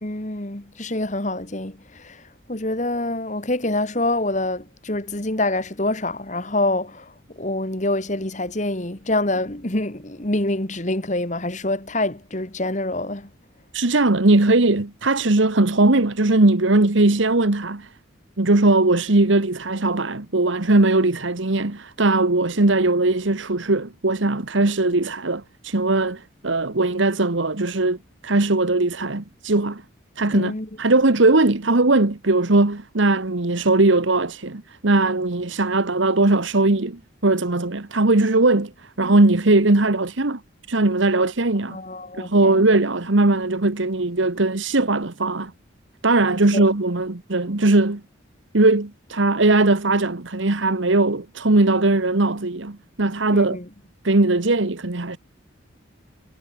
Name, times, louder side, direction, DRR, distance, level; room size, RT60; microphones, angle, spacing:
voice 1, 0.0-13.3 30.3-30.7 41.7-42.6 46.5-46.7 53.3-53.7, left 2 dB, 35° left, 2.1 m, -26 dB
voice 2, 13.7-17.9 18.4-28.0 28.2-29.8 30.2-40.4 40.7-41.8 42.2-45.5 46.0-48.0 48.5-53.6 54.0-55.2, right 2 dB, 70° right, 1.4 m, -19 dB
head